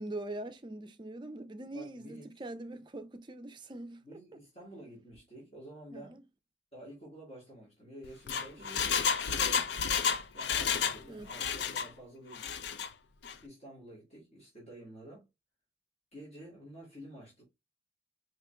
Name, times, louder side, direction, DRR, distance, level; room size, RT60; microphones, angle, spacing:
voice 1, 0.0-4.2 5.9-6.2 8.5-9.2 11.1-11.5, right 1 dB, 25° right, 0.4 m, -43 dB
voice 2, 1.7-2.3 4.0-6.2 6.7-8.7 9.3-9.7 10.0-12.8 13.4-15.3 16.1-17.4, right 1 dB, 35° left, 1.8 m, -50 dB
Engine, 8.0-11.0 11.3-11.9 12.3-12.9 13.2-13.3, left 6 dB, 65° left, 0.5 m, -31 dB
4.8 x 2.9 x 2.3 m
head